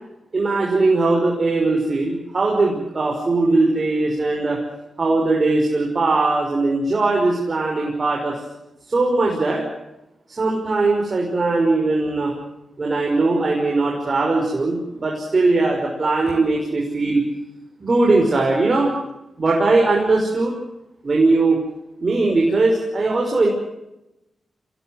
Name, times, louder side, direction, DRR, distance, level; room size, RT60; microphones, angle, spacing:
voice 1, 0.3-4.6 5.0-8.3 8.9-9.6 10.4-12.3 12.8-17.2 17.8-18.9 19.4-20.5 21.0-21.6 22.0-23.5, right 3 dB, 50° right, -1 dB, 5.8 m, -19 dB
26.5 x 17.5 x 8.0 m, 0.90 s
supercardioid pair, 45°, 0 cm